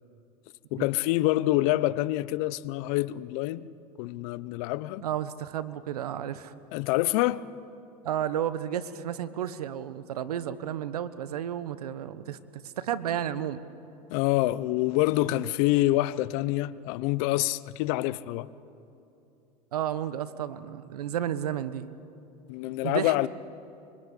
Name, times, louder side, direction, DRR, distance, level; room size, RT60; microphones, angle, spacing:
voice 1, 0.7-3.7 4.0-5.0 6.7-7.4 14.1-18.5 22.5-23.3, left 17 dB, 65° left, 0.9 m, -26 dB
voice 2, 5.0-6.5 8.0-12.4 12.8-13.6 15.2-15.4 19.7-21.9 22.8-23.3, right 10 dB, 90° right, 1.2 m, -32 dB
25.0 x 24.5 x 8.5 m
hypercardioid pair, 95°, 19 cm